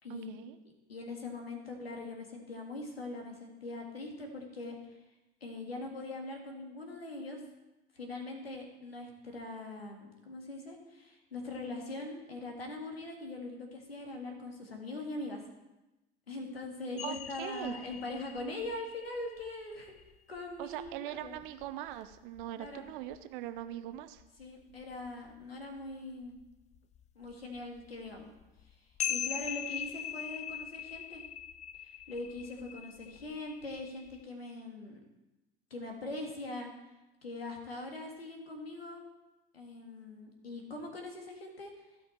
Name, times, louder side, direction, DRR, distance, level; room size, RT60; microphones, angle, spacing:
voice 1, 0.1-0.6 17.0-17.8 20.6-24.2, right 13 dB, 60° right, 11 dB, 0.8 m, -41 dB
voice 2, 0.9-5.0 5.4-7.4 7.9-15.4 16.3-19.9 20.3-21.3 22.6-22.9 24.4-26.4 27.2-28.3 28.6-28.8 29.1-31.2 31.8-35.0 35.7-36.7 37.2-39.0 39.5-41.7, left 2 dB, 85° left, 2 dB, 2.0 m, -42 dB
sound 1, 17.0-23.2 23.6-23.7 24.0-25.4 25.8-25.9 26.2-34.2, left 10 dB, 25° left, 0.4 m, -42 dB
15.5 x 5.8 x 4.5 m, 1.0 s
figure-of-eight pair, 75°, 29 cm